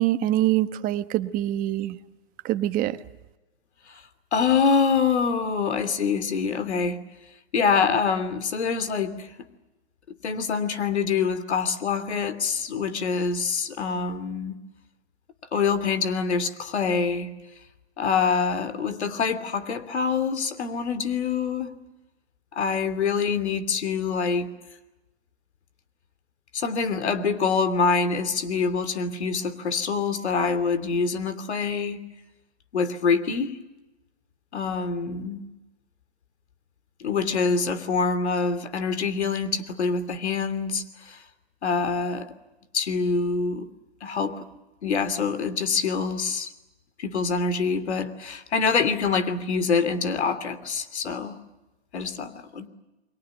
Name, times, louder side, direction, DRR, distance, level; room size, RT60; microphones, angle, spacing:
voice 1, 0.0-2.0 2.4-3.0, right 14 dB, 25° right, 11 dB, 1.2 m, -24 dB
voice 2, 4.3-7.0 7.5-9.3 10.2-14.6 15.5-17.3 18.0-21.8 22.5-24.5 26.5-32.0 32.7-33.5 34.5-35.4 37.0-41.2 41.6-42.3 42.7-43.7 44.0-44.4 44.8-46.5 47.0-51.4 51.9-52.7, left 5 dB, 80° left, 11 dB, 3.0 m, -25 dB
29.5 x 22.5 x 8.0 m, 1.0 s
hypercardioid pair, 130°, 33 cm